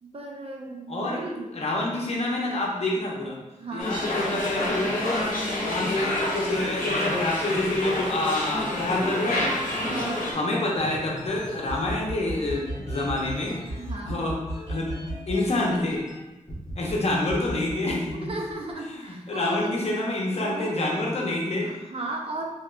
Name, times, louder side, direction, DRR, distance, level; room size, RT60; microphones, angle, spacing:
voice 1, 0.0-1.5 3.6-3.9 9.9-10.4 13.8-14.2 18.1-19.8 20.4-21.0 21.6-22.4, right 2 dB, 45° right, 0 dB, 0.5 m, -35 dB
voice 2, 0.9-1.2 1.5-3.4 3.7-5.3 5.6-9.5 10.3-13.6 14.0-14.4 14.7-14.9 15.3-16.0 16.8-18.3 18.9-21.7, left 2 dB, 50° left, -3 dB, 0.8 m, -27 dB
sound 1, 3.8-10.3, left 1 dB, 85° left, 0.8 m, -28 dB
sound 2, 10.8-16.2 16.5-16.9 17.3-18.7, right 1 dB, 20° left, 1.3 m, -36 dB
3.4 x 3.0 x 2.4 m, 1.0 s
wide cardioid pair, 105°, 14 cm